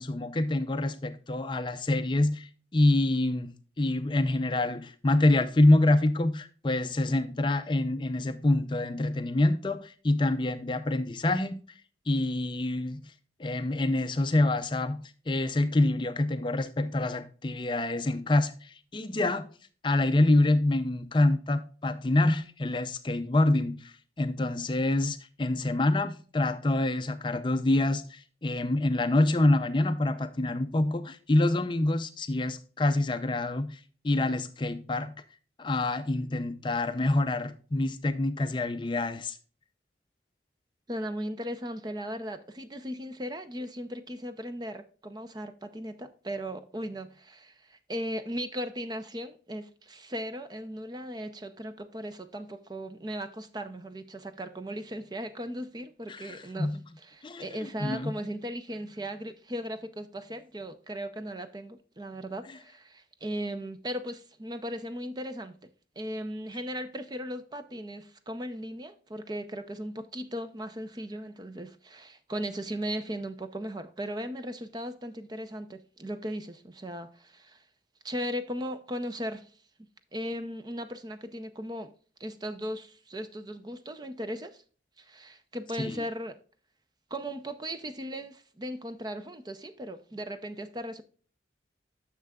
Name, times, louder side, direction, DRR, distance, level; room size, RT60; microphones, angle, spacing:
voice 1, 0.0-11.6 12.1-13.1 13.4-19.5 19.8-35.1 35.6-39.4 56.1-56.8 57.2-58.1 85.8-86.0, left 2 dB, 25° left, 0.5 m, -26 dB
voice 2, 40.9-65.6 66.0-77.6 78.0-79.5 80.1-81.9 82.2-84.6 85.0-86.4 87.1-91.0, equal, 20° right, 0.5 m, -37 dB
9.9 x 6.6 x 2.3 m
head